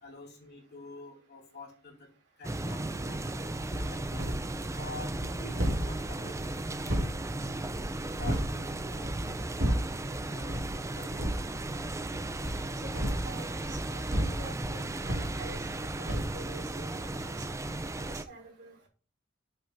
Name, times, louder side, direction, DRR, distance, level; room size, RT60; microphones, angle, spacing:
voice 1, 0.0-2.1 2.4-3.2 3.7-4.3 4.7-6.4 6.6-7.0 8.2-9.2 10.2-10.6 10.9-11.5, left 2 dB, 60° left, 0 dB, 2.4 m, -47 dB
sound 1, 2.4-18.2, right 2 dB, 15° right, 0.5 m, -36 dB
sound 2, 3.7-4.6 4.9-8.6 9.0-10.0 10.4-10.8 11.1-11.5 12.3-15.8 16.1-16.4, equal, 85° right, 2.4 m, -33 dB
voice 2, 13.2-15.6 16.0-17.1 18.0-18.9, right 1 dB, 60° right, 0 dB, 3.0 m, -47 dB
9.0 x 6.9 x 2.7 m, 0.37 s
head